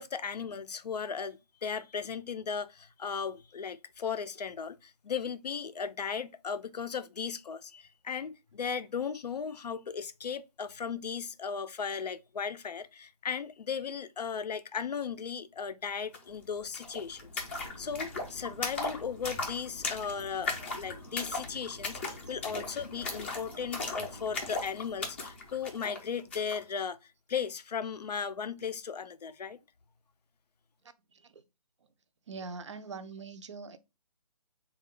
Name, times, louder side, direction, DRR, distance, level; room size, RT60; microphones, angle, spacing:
voice 1, 0.0-29.6, left 6 dB, 90° left, 0.4 m, -36 dB
sound 1, 16.1-16.2 16.4-26.6, left 3 dB, 20° left, 0.4 m, -38 dB
voice 2, 31.1-31.4 31.8-31.9 32.3-33.8, right 4 dB, 50° right, 0.4 m, -43 dB
3.4 x 2.3 x 3.6 m
hypercardioid pair, 155°, 20 cm